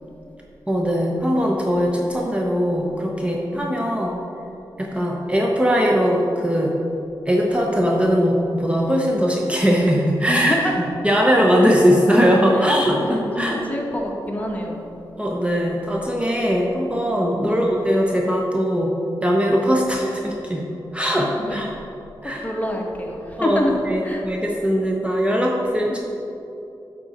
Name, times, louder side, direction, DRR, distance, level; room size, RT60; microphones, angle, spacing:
voice 1, 0.7-4.1 4.8-6.7 7.3-10.6 11.0-13.6 15.2-18.9 19.2-20.6 20.9-21.7 22.2-22.4 23.4-23.6 23.9-26.0, equal, 15° right, -2 dB, 0.8 m, -20 dB
voice 2, 3.5-3.9 4.9-5.0 10.3-10.8 11.6-11.8 12.5-14.8 17.4-17.7 21.4-21.6 22.2-24.3 25.9-26.0, left 1 dB, 20° left, -1 dB, 1.2 m, -27 dB
9.8 x 3.9 x 4.3 m, 2.9 s
cardioid pair, 60°, 8 cm